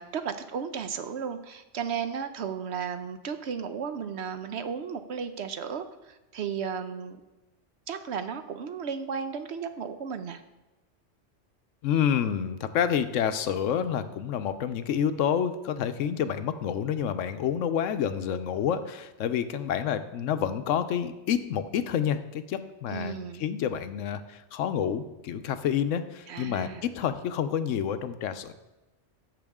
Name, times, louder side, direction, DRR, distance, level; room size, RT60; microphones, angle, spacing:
voice 1, 0.0-7.2 7.9-10.4 22.9-23.4 26.3-26.8, right 7 dB, 65° right, 9 dB, 0.9 m, -34 dB
voice 2, 11.8-28.5, left 8 dB, 85° left, 11 dB, 1.0 m, -28 dB
13.5 x 5.9 x 3.6 m, 1.0 s
omnidirectional pair, 1.3 m